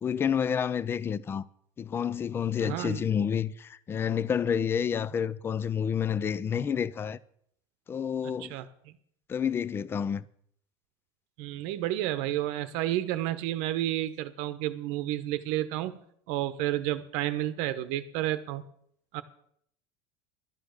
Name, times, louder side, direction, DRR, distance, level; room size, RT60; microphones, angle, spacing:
voice 1, 0.0-1.4 1.8-7.2 7.9-8.6 9.3-10.2, left 8 dB, 20° left, 0.4 m, -29 dB
voice 2, 2.6-3.1 8.4-8.6 11.4-16.0 16.3-18.6 19.1-19.2, right 14 dB, 65° right, 0.9 m, -31 dB
12.0 x 9.3 x 6.5 m
cardioid pair, 150°, 13 cm